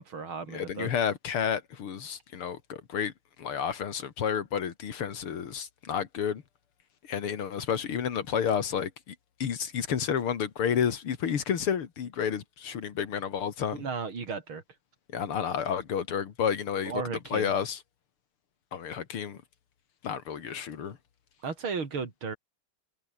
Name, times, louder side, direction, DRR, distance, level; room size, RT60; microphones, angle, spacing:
voice 1, 0.0-0.9 13.7-14.6 16.9-17.5 21.4-22.4, right 5 dB, 70° right, 4.3 m, -35 dB
voice 2, 0.5-3.1 3.4-6.4 7.1-13.8 15.1-16.9 17.3-17.8 18.7-19.4 20.0-21.0, left 7 dB, 80° left, 2.7 m, -30 dB
omnidirectional pair, 2.4 m